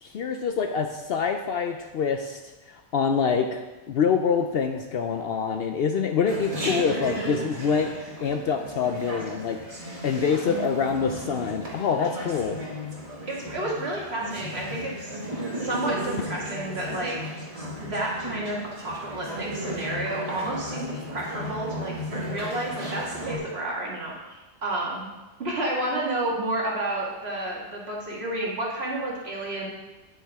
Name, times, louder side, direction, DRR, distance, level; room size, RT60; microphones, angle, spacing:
voice 1, 0.0-2.4 2.7-3.6 3.9-7.9 8.2-12.6, left 6 dB, 60° left, 5 dB, 0.7 m, -26 dB
Chatter, 6.3-23.4, equal, 30° right, 2.0 m, -35 dB
voice 2, 13.2-15.2 15.6-17.2 17.8-21.9 22.2-25.1 25.4-29.7, right 1 dB, 60° right, -4 dB, 2.1 m, -30 dB
9.2 x 8.8 x 3.5 m, 1.1 s
omnidirectional pair, 1.2 m